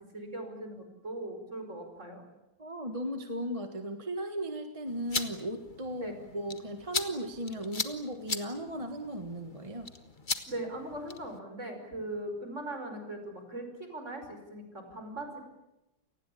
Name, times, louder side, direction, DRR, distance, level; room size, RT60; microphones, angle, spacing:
voice 1, 0.1-2.2 6.0-6.2 10.5-15.4, right 1 dB, 35° right, 5 dB, 5.7 m, -40 dB
voice 2, 2.6-9.9, right 1 dB, 20° right, 6 dB, 1.5 m, -36 dB
sound 1, 4.9-11.4, left 4 dB, 25° left, 1.5 m, -39 dB
29.0 x 19.5 x 8.6 m, 0.96 s
omnidirectional pair, 2.2 m